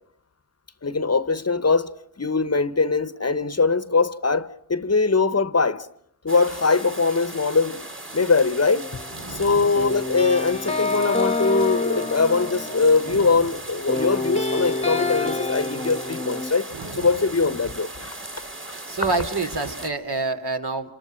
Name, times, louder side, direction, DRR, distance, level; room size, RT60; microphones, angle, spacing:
voice 1, 0.8-1.9 2.2-5.9 6.2-7.9 8.1-8.9 9.3-16.7 17.0-18.1, left 4 dB, 35° left, 0.9 m, -21 dB
sound 1, 6.3-19.9, right 2 dB, 30° right, 2.9 m, -38 dB
sound 2, 8.7-9.3 9.7-13.5 13.9-16.5, left 3 dB, 15° left, 1.2 m, -27 dB
voice 2, 9.1-9.8 13.1-13.5 16.7-17.1 18.6-21.0, right 3 dB, 65° right, 3.0 m, -29 dB
28.0 x 28.0 x 5.6 m
wide cardioid pair, 100°, 42 cm